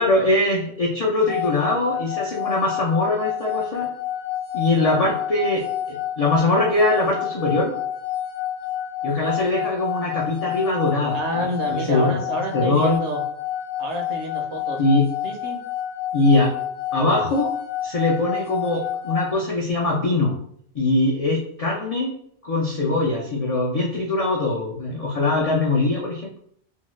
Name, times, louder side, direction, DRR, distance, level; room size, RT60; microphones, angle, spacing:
voice 1, 0.0-3.9 4.5-7.7 9.0-12.2 12.5-13.0 14.8-15.0 16.1-16.5 16.9-17.5 17.8-20.3 20.7-22.1 22.4-26.4, left 2 dB, 65° left, -3 dB, 0.3 m, -22 dB
sound 1, 1.3-19.3, left 11 dB, 85° left, 0.9 m, -29 dB
voice 2, 11.1-13.2 13.8-14.8 15.2-15.6, right 1 dB, 70° right, 3 dB, 0.9 m, -29 dB
2.7 x 2.2 x 3.1 m, 0.66 s
omnidirectional pair, 1.2 m